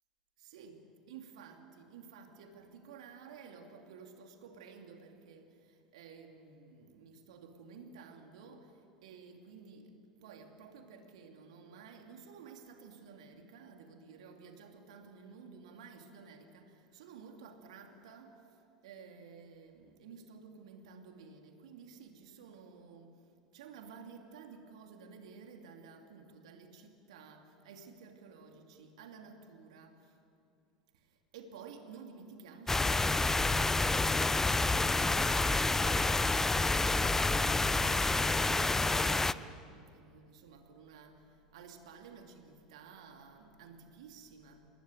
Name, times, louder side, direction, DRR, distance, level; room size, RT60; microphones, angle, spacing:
voice 1, 0.4-18.6 18.8-23.2 23.5-30.2 30.9-36.3 36.7-44.7, right 5 dB, 60° right, 4 dB, 3.0 m, -53 dB
sound 1, 32.7-39.3, left 3 dB, 10° left, 0.7 m, -28 dB
29.0 x 19.5 x 9.5 m, 2.5 s
figure-of-eight pair, 75°, 4 cm